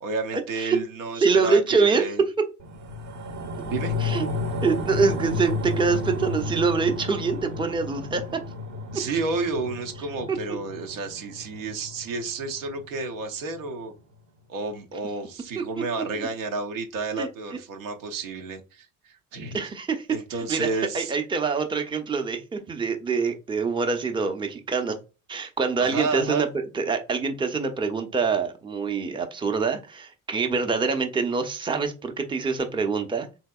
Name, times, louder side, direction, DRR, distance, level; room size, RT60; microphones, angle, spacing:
voice 1, 0.0-2.2 3.6-3.9 8.9-13.9 14.5-19.6 20.1-21.1 25.8-26.4, right 3 dB, 80° right, 3 dB, 0.7 m, -31 dB
voice 2, 1.2-2.0 4.0-4.3 4.6-8.2 15.8-15.9 17.2-17.3 19.5-20.1 20.5-20.7 20.9-25.0 25.3-33.4, right 4 dB, 10° right, 6 dB, 0.6 m, -25 dB
sound 1, 2.6-13.2 13.6-13.7, left 3 dB, 45° right, 0.7 m, -32 dB
3.4 x 2.7 x 2.3 m, 0.31 s
hypercardioid pair, 60°, 40 cm